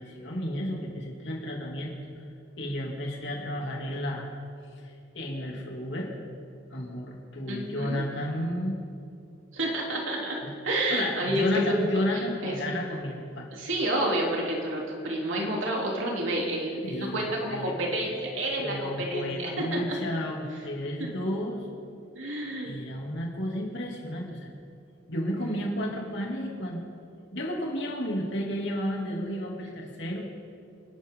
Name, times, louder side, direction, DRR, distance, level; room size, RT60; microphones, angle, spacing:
voice 1, 0.0-2.1 2.6-4.3 4.8-4.9 5.1-6.1 6.7-8.7 10.4-10.5 10.9-13.5 16.8-17.7 18.1-18.3 18.6-21.7 22.6-24.5 25.1-26.8 27.3-30.3, equal, 65° left, -1 dB, 3.1 m, -32 dB
voice 2, 7.5-8.0 9.5-11.8 12.4-12.8 13.5-19.8 21.0-21.1 22.2-22.7, right 1 dB, 90° right, -2 dB, 3.6 m, -29 dB
28.5 x 12.0 x 4.0 m, 2.4 s
head